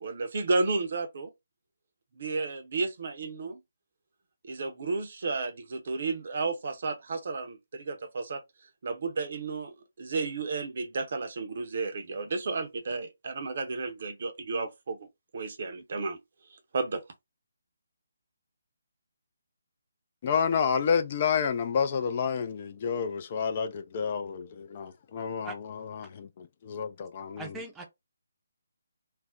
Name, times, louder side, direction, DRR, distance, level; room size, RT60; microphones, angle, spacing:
voice 1, 0.0-1.3 2.2-3.6 4.4-8.4 8.8-15.1 15.3-16.2 16.7-17.0, right 3 dB, 50° right, 0.6 m, -32 dB
voice 2, 20.2-25.5 26.0-27.5, left 6 dB, 35° left, 0.3 m, -29 dB
voice 3, 27.4-27.8, right 3 dB, 10° right, 0.6 m, -40 dB
2.4 x 2.0 x 3.6 m
figure-of-eight pair, 145°, 0 cm